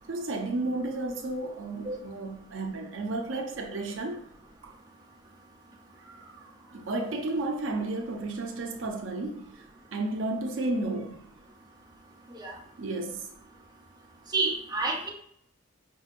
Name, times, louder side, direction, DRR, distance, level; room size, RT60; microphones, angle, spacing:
voice 1, 0.1-4.2 4.6-4.7 6.0-9.6 9.9-11.2 12.8-13.3, right 2 dB, 70° right, 3 dB, 0.5 m, -33 dB
voice 2, 14.3-15.1, right 3 dB, 20° right, -2 dB, 0.6 m, -29 dB
5.4 x 2.8 x 2.5 m, 0.67 s
head